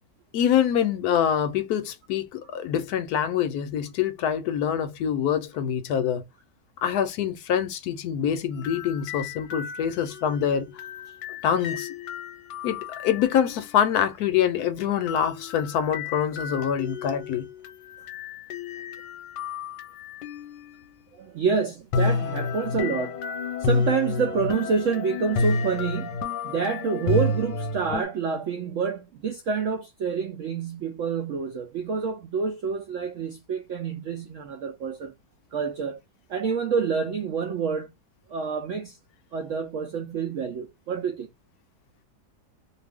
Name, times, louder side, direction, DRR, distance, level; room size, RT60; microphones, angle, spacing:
voice 1, 0.3-6.2 6.8-10.7 11.4-11.9 12.6-17.5, left 9 dB, 70° left, 1.0 m, -25 dB
sound 1, 8.5-13.8 15.1-20.8 21.9-28.0, left 4 dB, 90° left, 1.2 m, -31 dB
voice 2, 21.1-23.2 23.6-35.1 35.5-36.0 36.3-37.9 38.3-39.0 39.3-41.3, right 5 dB, 80° right, 0.7 m, -28 dB
2.6 x 2.4 x 3.4 m
omnidirectional pair, 1.8 m